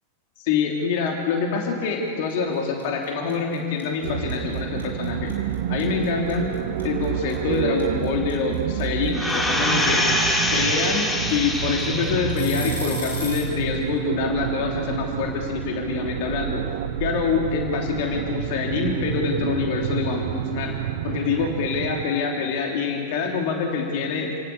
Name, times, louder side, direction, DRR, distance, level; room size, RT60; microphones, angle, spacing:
voice 1, 0.4-5.3 5.7-6.5 6.8-10.1 10.5-16.6 17.0-20.7 21.0-24.3, left 5 dB, 50° left, 1 dB, 3.2 m, -25 dB
sound 1, 2.3-2.5 2.8-13.6, left 2 dB, 70° left, 5.8 m, -36 dB
sound 2, 4.0-22.0, right 11 dB, 50° right, 1.0 m, -29 dB
sound 3, 9.1-12.5 13.0-13.1, left 1 dB, 15° left, 5.0 m, -24 dB
29.0 x 18.0 x 8.6 m, 2.3 s
figure-of-eight pair, 90°, 0 cm